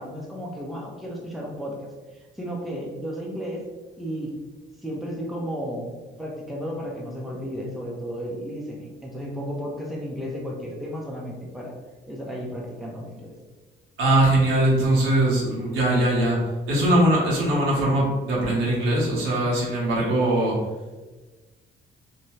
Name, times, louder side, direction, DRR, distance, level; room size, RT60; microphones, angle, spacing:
voice 1, 0.0-3.6 4.0-4.3 4.8-5.9 6.2-11.8 12.1-13.3, equal, ahead, -2 dB, 0.6 m, -33 dB
voice 2, 14.0-16.4 16.7-20.6, right 1 dB, 85° right, -5 dB, 1.1 m, -21 dB
2.7 x 2.2 x 3.1 m, 1.2 s
cardioid pair, 90°, 20 cm